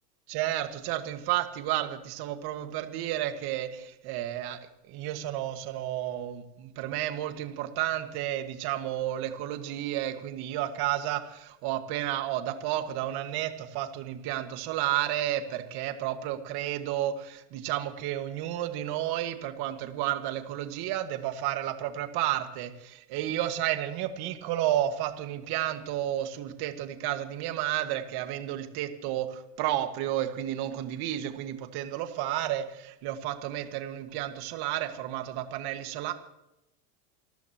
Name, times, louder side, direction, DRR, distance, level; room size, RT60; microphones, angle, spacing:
voice 1, 0.3-36.1, right 12 dB, 50° right, 8 dB, 1.8 m, -32 dB
29.0 x 14.0 x 3.0 m, 0.89 s
hypercardioid pair, 100°, 48 cm